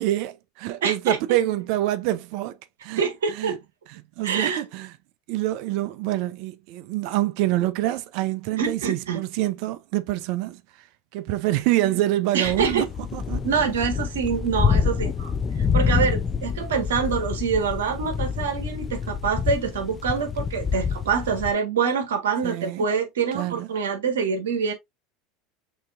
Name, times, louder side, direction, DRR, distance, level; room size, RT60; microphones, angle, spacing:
voice 1, 0.0-3.5 3.9-4.9 5.3-10.9 11.1-12.9 13.1-13.4 22.4-22.8 23.3-23.7, right 15 dB, 65° right, 0.5 m, -26 dB
voice 2, 0.8-1.2 3.0-3.6 4.2-4.6 8.6-9.2 12.3-12.9 13.4-15.3 15.7-24.7, right 6 dB, 85° right, 1.4 m, -25 dB
sound 1, 12.4-21.5, left 6 dB, 30° left, 0.6 m, -27 dB
6.3 x 2.8 x 2.5 m
hypercardioid pair, 90°, 0 cm